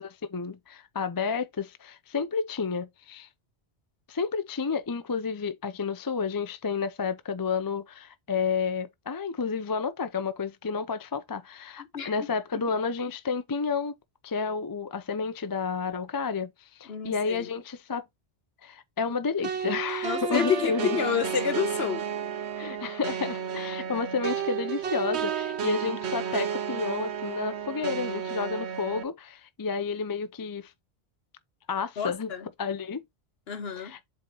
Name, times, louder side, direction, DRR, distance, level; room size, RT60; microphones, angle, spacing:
voice 1, 0.0-3.3 4.1-13.9 14.2-16.5 16.8-18.0 18.6-21.0 22.6-30.7 31.7-32.3 32.6-33.0 33.8-34.0, left 5 dB, 25° left, 0.5 m, -31 dB
voice 2, 16.9-17.5 20.0-22.0 32.0-32.5 33.5-33.9, left 7 dB, 65° left, 1.3 m, -29 dB
sound 1, 19.4-29.0, right 7 dB, 75° right, 1.1 m, -32 dB
7.8 x 4.2 x 3.0 m
omnidirectional pair, 1.1 m